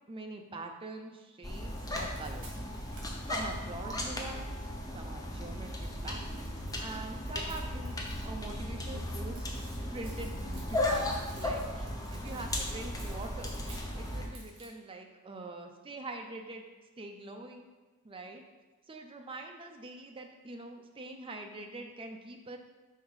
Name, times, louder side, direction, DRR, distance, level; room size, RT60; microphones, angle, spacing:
voice 1, 0.1-2.5 3.3-4.6 4.9-13.6 13.9-16.7 17.0-17.7 18.0-18.4 18.9-22.6, right 2 dB, 25° right, 4 dB, 0.5 m, -44 dB
sound 1, 1.4-14.3, left 1 dB, 15° left, 0.7 m, -36 dB
sound 2, 1.5-3.9 5.8-8.5 8.7-14.7, right 3 dB, 60° right, 1.7 m, -55 dB
5.6 x 3.5 x 4.8 m, 1.2 s
head